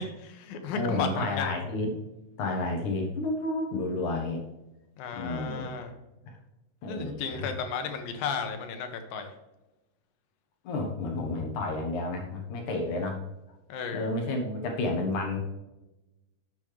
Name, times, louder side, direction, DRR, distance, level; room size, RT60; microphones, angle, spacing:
voice 1, 0.0-1.5 5.0-5.9 6.9-9.3 13.7-14.1, left 5 dB, 80° left, 6 dB, 2.9 m, -34 dB
voice 2, 0.7-2.0 2.4-4.4 5.1-5.6 6.8-7.5 10.6-13.2 13.9-15.4, left 2 dB, 65° left, 2 dB, 2.6 m, -31 dB
10.5 x 7.7 x 3.4 m, 1.0 s
omnidirectional pair, 4.1 m